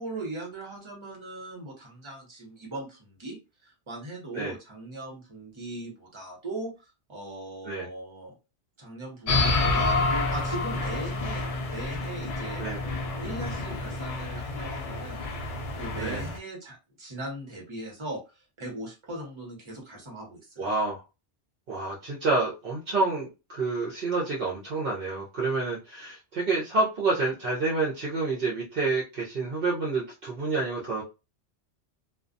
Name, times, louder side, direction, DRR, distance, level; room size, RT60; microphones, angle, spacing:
voice 1, 0.0-3.4 3.6-6.7 7.1-8.4 8.8-12.6 13.2-15.4 15.7-18.2 18.6-20.6, right 2 dB, 25° right, -2 dB, 1.0 m, -39 dB
sound 1, 9.3-16.4, left 3 dB, 70° left, 0.3 m, -29 dB
voice 2, 20.6-21.0 21.7-31.0, right 3 dB, 60° right, -4 dB, 0.8 m, -28 dB
2.3 x 2.2 x 2.5 m, 0.28 s
omnidirectional pair, 1.2 m